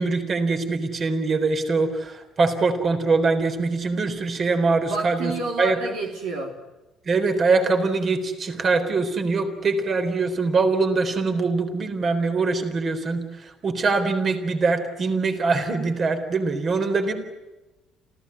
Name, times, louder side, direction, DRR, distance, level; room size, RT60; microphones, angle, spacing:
voice 1, 0.0-5.8 7.1-17.1, right 3 dB, 45° right, 6 dB, 4.0 m, -23 dB
voice 2, 4.9-6.5, right 3 dB, 80° right, 1 dB, 3.3 m, -29 dB
27.5 x 16.0 x 9.8 m, 1.1 s
hypercardioid pair, 60°, 0 cm